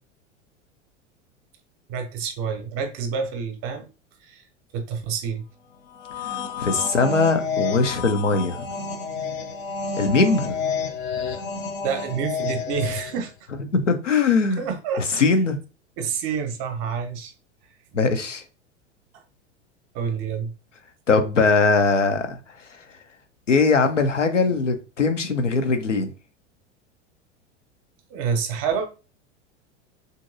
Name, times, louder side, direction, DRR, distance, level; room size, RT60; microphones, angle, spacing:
voice 1, 1.9-3.9 4.2-4.4 4.7-5.4 11.8-13.3 14.6-15.2 16.0-17.3 19.9-20.5 28.1-28.9, right 6 dB, 35° right, 0.6 m, -28 dB
sound 1, 5.9-13.3, left 5 dB, 30° left, 0.3 m, -30 dB
voice 2, 6.6-8.6 10.0-10.6 13.7-14.6 15.2-15.6 17.9-18.4 21.1-22.4 23.5-26.1, left 4 dB, 85° left, 0.5 m, -20 dB
2.9 x 2.6 x 2.5 m
figure-of-eight pair, 85°, 36 cm